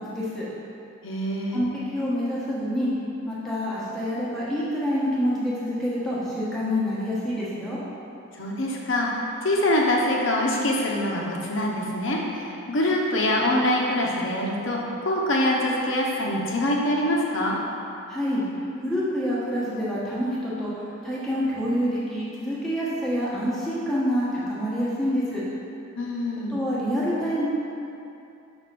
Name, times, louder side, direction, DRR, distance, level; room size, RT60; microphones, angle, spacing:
voice 1, 0.1-0.5 1.5-2.9 3.2-7.8 18.1-18.4 18.8-20.7 21.0-25.4 26.5-27.5, equal, ahead, -10 dB, 1.0 m, -27 dB
voice 2, 1.0-1.6 8.3-17.6 26.0-26.6, left 1 dB, 60° left, -2 dB, 0.9 m, -24 dB
5.6 x 3.6 x 5.9 m, 2.7 s
head